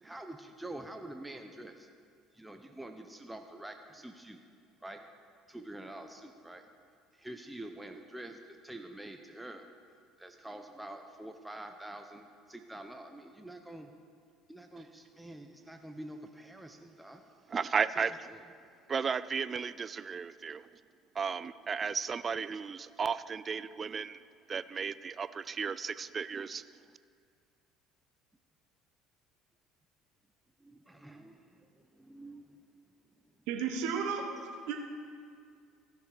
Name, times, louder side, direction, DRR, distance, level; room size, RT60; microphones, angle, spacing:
voice 1, 0.0-1.9 2.3-4.4 4.8-5.1 5.5-6.6 7.1-9.7 10.2-13.9 14.5-17.2 18.0-18.4 30.6-32.5, right 1 dB, 5° right, 5 dB, 0.8 m, -47 dB
voice 2, 17.5-18.3 18.9-20.7 21.2-24.2 24.5-26.6, right 6 dB, 35° right, 15 dB, 0.4 m, -34 dB
voice 3, 33.5-34.7, right 6 dB, 70° right, 3 dB, 1.1 m, -34 dB
15.0 x 6.6 x 5.0 m, 2.3 s
hypercardioid pair, 65°, 0 cm